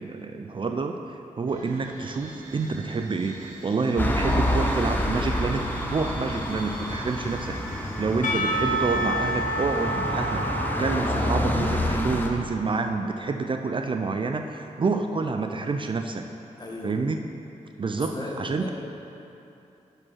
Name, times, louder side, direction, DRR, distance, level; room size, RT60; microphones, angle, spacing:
voice 1, 0.0-16.3 16.8-17.2 17.8-18.7, right 4 dB, 40° right, 5 dB, 0.4 m, -28 dB
sound 1, 1.5-10.5, right 1 dB, 80° right, 1.1 m, -42 dB
sound 2, 4.0-12.3, left 1 dB, 15° left, 0.8 m, -28 dB
Percussion / Church bell, 8.2-13.2, right 1 dB, 80° left, 0.9 m, -30 dB
voice 2, 16.6-16.9 17.9-18.7, left 2 dB, 30° left, -2 dB, 1.4 m, -36 dB
6.1 x 5.3 x 5.6 m, 2.8 s
cardioid pair, 55°, 13 cm